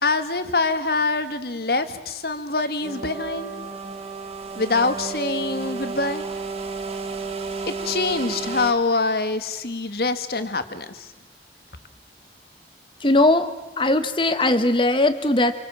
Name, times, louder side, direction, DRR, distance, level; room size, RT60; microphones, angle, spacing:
voice 1, 0.0-3.5 4.6-6.3 7.7-11.1, left 3 dB, 60° left, 9 dB, 1.9 m, -25 dB
sound 1, 2.8-8.7, right 4 dB, 35° right, 1.8 m, -32 dB
voice 2, 13.0-15.5, left 2 dB, 30° left, 9 dB, 1.3 m, -19 dB
28.0 x 24.5 x 7.4 m, 1.0 s
head